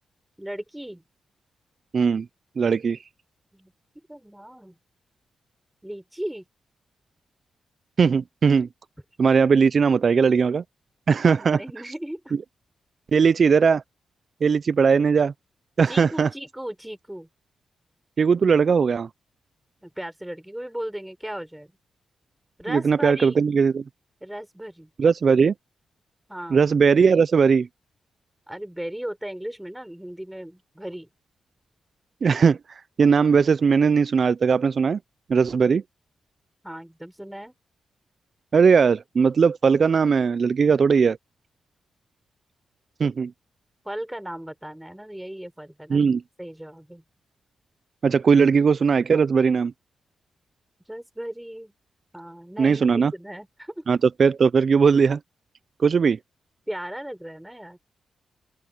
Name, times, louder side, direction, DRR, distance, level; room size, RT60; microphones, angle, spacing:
voice 1, 0.4-1.0 3.5-3.7 4.1-4.7 5.8-6.4 11.4-12.4 15.9-17.3 19.8-21.7 22.6-23.4 24.2-24.9 26.3-26.6 28.5-31.1 36.6-37.5 43.8-46.1 46.4-47.0 50.9-51.7 52.1-53.9 56.7-57.8, right 1 dB, 5° right, 6.4 m, -36 dB
voice 2, 1.9-2.3 2.6-3.0 8.0-8.7 9.2-10.6 11.1-11.6 13.1-13.8 14.4-15.3 15.8-16.3 18.2-19.1 22.7-23.8 25.0-25.5 26.5-27.7 32.2-35.0 35.3-35.8 38.5-41.2 43.0-43.3 45.9-46.2 48.0-49.7 52.6-53.1 53.9-55.2 55.8-56.2, right 5 dB, 50° right, 0.3 m, -19 dB
open air
cardioid pair, 90°, 0 cm